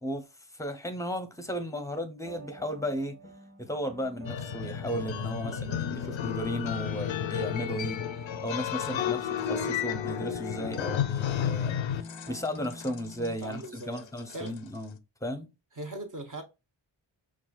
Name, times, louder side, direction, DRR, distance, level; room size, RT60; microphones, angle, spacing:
voice 1, 0.5-3.2 3.6-8.0 8.4-11.8 12.3-15.5, equal, 5° left, 0.7 m, -35 dB
sound 1, 2.2-13.4, equal, 15° right, 1.3 m, -48 dB
sound 2, 4.3-14.6, left 9 dB, 70° left, 0.5 m, -32 dB
voice 2, 5.4-6.6 8.9-9.2 13.2-14.0 14.3-14.5 15.7-16.4, right 2 dB, 40° right, 1.1 m, -41 dB
5.7 x 2.5 x 2.4 m
wide cardioid pair, 45°, 49 cm